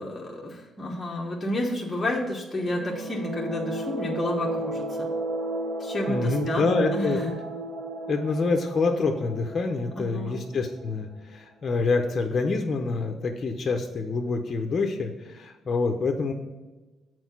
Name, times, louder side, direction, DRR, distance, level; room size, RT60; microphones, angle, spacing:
voice 1, 0.0-5.1 5.8-7.3 9.9-10.4, left 1 dB, 20° left, -2 dB, 1.0 m, -30 dB
sound 1, 2.5-11.1, right 1 dB, 65° right, 1.6 m, -33 dB
voice 2, 6.1-7.2 8.1-16.3, left 3 dB, 40° left, 3 dB, 0.7 m, -26 dB
6.3 x 4.6 x 5.9 m, 1.2 s
cardioid pair, 90°, 0 cm